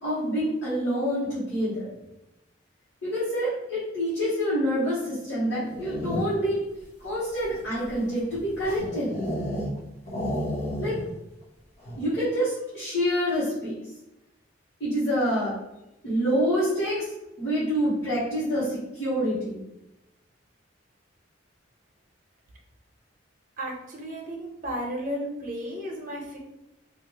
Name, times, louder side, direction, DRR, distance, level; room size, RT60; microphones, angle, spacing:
voice 1, 0.0-1.9 3.0-6.6 7.0-9.1 10.8-11.0 12.0-13.8 14.8-15.5 16.0-17.0 17.4-19.6, equal, 55° left, -10 dB, 1.2 m, -27 dB
sound 1, 5.6-6.6 7.2-9.8 10.1-11.2 11.4-11.5 11.8-12.2, equal, 35° left, 1.1 m, -32 dB
voice 2, 23.6-26.4, equal, 45° right, -1 dB, 0.7 m, -33 dB
2.9 x 2.4 x 3.0 m, 0.90 s
head